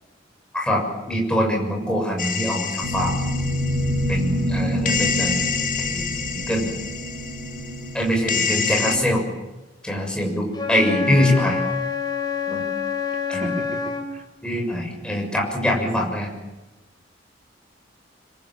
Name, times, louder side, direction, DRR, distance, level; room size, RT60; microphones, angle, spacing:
voice 1, 0.5-3.2 4.1-5.5 5.8-6.1 6.5-6.7 7.9-9.2 9.8-11.6 12.5-12.7 13.3-13.5 14.4-16.3, left 1 dB, 5° left, 0 dB, 6.8 m, -23 dB
sound 1, 2.2-4.5 4.9-9.0, left 6 dB, 45° left, 1.8 m, -28 dB
sound 2, 2.8-8.7, equal, 80° right, 3.9 m, -27 dB
voice 2, 8.3-9.2 13.4-14.3, equal, 40° right, 3 dB, 3.7 m, -35 dB
Wind instrument woodwind instrument, 10.5-14.1, left 5 dB, 25° left, 4.5 m, -27 dB
25.5 x 23.5 x 9.1 m, 1.1 s
head